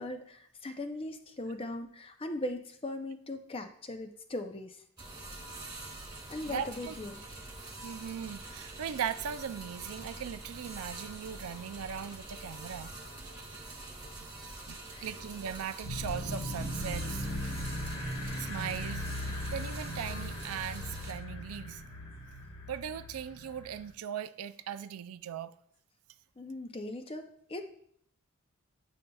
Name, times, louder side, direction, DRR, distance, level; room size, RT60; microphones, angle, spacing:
voice 1, 0.0-4.8 6.3-7.2 14.9-15.1 26.4-27.2 27.5-27.6, left 1 dB, 25° left, 0.5 m, -39 dB
sound 1, 5.0-21.1, right 2 dB, 20° right, 1.2 m, -45 dB
voice 2, 6.5-7.0 7.8-12.9 14.7-17.5 18.3-19.1 19.5-21.8 22.7-25.5, right 8 dB, 85° right, 0.4 m, -39 dB
sound 2, 15.8-23.9, left 1 dB, 80° left, 1.2 m, -38 dB
8.9 x 5.3 x 2.3 m
head